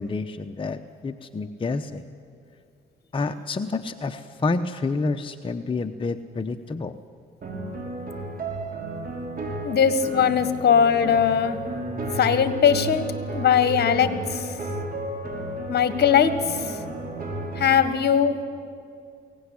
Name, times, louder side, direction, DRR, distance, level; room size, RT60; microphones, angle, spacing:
voice 1, 0.0-2.0 3.1-7.0, left 3 dB, 25° left, 6 dB, 0.8 m, -29 dB
sound 1, 7.4-17.8, right 2 dB, 45° right, 5.7 m, -33 dB
voice 2, 9.6-11.6 12.2-13.0 13.3-14.5 15.7-16.8 17.6-18.4, left 7 dB, 55° left, 11 dB, 1.6 m, -20 dB
22.5 x 17.5 x 9.9 m, 2.3 s
cardioid pair, 90°, 20 cm